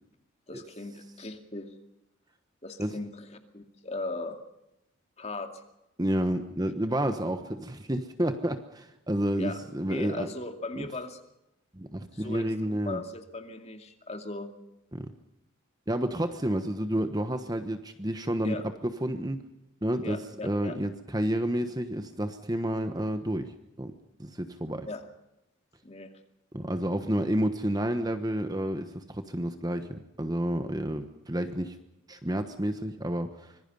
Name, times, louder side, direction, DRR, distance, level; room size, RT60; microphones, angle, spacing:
voice 1, 0.5-1.7 2.6-4.4 5.2-5.5 9.4-9.6 9.9-11.2 12.1-12.5 12.9-14.6 18.4-18.6 20.0-20.8 24.9-25.0 25.8-26.1, left 2 dB, 30° left, 6 dB, 2.4 m, -38 dB
voice 2, 6.0-10.3 10.8-10.9 11.7-13.0 14.9-15.1 15.9-19.4 19.8-20.2 20.4-23.9 24.2-24.9 26.5-31.7 32.1-33.5, right 1 dB, 20° right, 8 dB, 1.1 m, -30 dB
25.5 x 21.0 x 5.5 m, 0.87 s
head